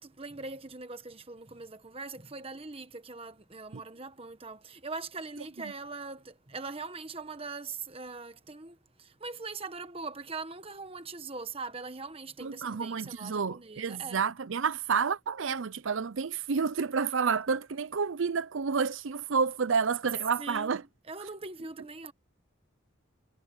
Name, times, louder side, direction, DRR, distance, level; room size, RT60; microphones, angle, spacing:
voice 1, 0.0-14.2 20.4-22.1, right 4 dB, 30° right, 1.3 m, -41 dB
voice 2, 12.4-20.8, right 5 dB, 70° right, 0.6 m, -30 dB
head